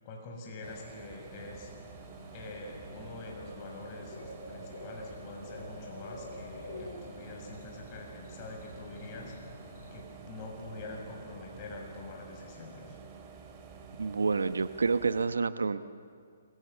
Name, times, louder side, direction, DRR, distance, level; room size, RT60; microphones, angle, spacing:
voice 1, 0.0-1.7 2.3-9.3 9.9-13.0, left 2 dB, 30° left, 1 dB, 6.9 m, -45 dB
sound 1, 0.6-15.3, right 6 dB, 25° right, 3.0 m, -50 dB
Bird / Cricket, 1.3-10.0, left 2 dB, 60° left, 7.5 m, -48 dB
voice 2, 14.0-15.8, right 4 dB, 90° right, 12 dB, 1.0 m, -28 dB
27.5 x 23.0 x 6.9 m, 2.1 s
hypercardioid pair, 150°, 0 cm